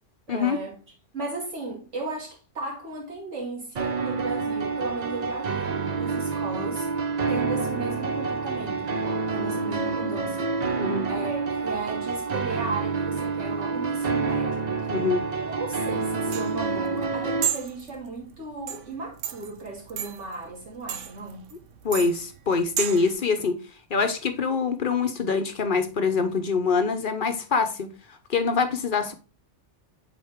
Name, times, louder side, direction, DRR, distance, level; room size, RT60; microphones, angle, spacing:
voice 1, 0.3-0.8 1.1-6.9 7.3-10.5 11.1-14.7 15.4-21.4, right 3 dB, 70° right, 2.7 m, -35 dB
sound 1, 3.8-17.5, right 4 dB, 40° right, 0.7 m, -28 dB
voice 2, 10.8-11.1 14.9-15.2 21.8-23.6 23.9-27.9 28.3-29.1, left 5 dB, 50° left, 0.9 m, -24 dB
sound 2, 15.7-23.1, right 9 dB, 90° right, 1.0 m, -34 dB
7.9 x 3.9 x 3.5 m
omnidirectional pair, 1.2 m